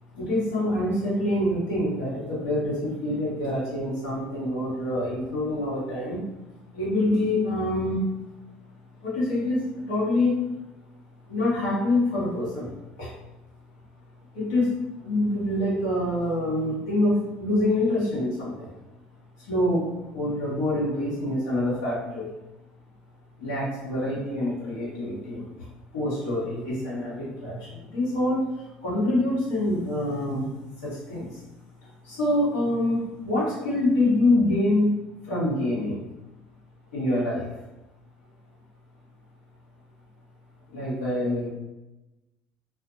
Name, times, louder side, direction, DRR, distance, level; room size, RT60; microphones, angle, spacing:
voice 1, 0.1-6.2 6.7-8.1 9.0-10.4 11.3-13.1 14.3-14.7 15.0-18.7 19.4-22.3 23.4-25.5 25.9-30.5 30.8-31.4 32.0-36.0 36.9-37.5 40.7-41.5, left 1 dB, 75° left, -8 dB, 1.4 m, -26 dB
2.5 x 2.4 x 2.6 m, 0.99 s
hypercardioid pair, 65°, 4 cm